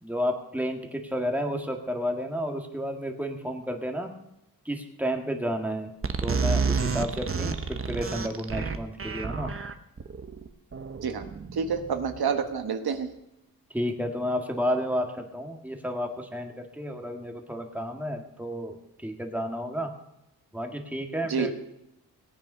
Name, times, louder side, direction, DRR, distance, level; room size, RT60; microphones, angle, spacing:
voice 1, 0.0-4.1 4.7-5.9 6.2-9.5 13.7-19.9 20.5-21.5, equal, 5° right, 3 dB, 1.9 m, -31 dB
sound 1, 6.0-12.4, right 5 dB, 35° right, 1.0 m, -30 dB
voice 2, 11.5-13.1 21.3-21.5, right 6 dB, 75° right, 7 dB, 1.3 m, -28 dB
17.5 x 9.2 x 5.6 m, 0.86 s
wide cardioid pair, 95°, 38 cm